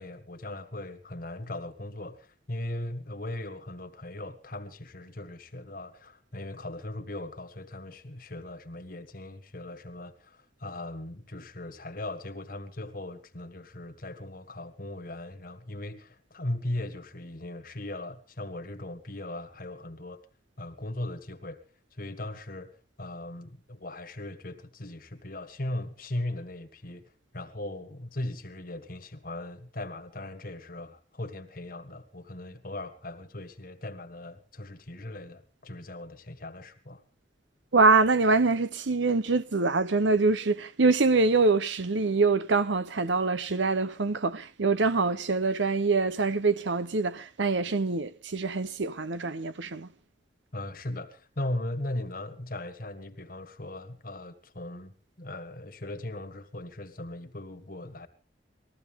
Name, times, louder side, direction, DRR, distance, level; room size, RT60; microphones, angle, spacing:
voice 1, 0.0-20.2 20.6-21.6 21.9-27.1 27.3-37.0 50.5-58.1, left 1 dB, 50° left, 1.6 m, -38 dB
voice 2, 37.7-49.9, right 3 dB, 85° right, 0.9 m, -24 dB
20.5 x 15.0 x 3.7 m
head